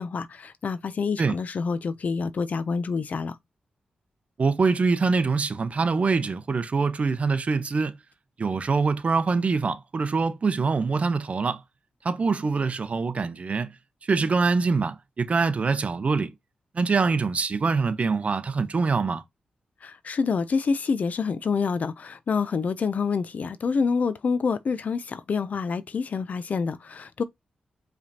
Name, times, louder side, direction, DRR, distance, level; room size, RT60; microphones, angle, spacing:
voice 1, 0.0-3.4 19.8-27.2, left 5 dB, 60° left, 0.5 m, -27 dB
voice 2, 4.4-7.9 8.4-11.6 12.0-13.7 14.0-16.3 16.7-19.2, right 4 dB, 50° right, 0.7 m, -24 dB
4.9 x 3.3 x 2.7 m
cardioid pair, 60°, 3 cm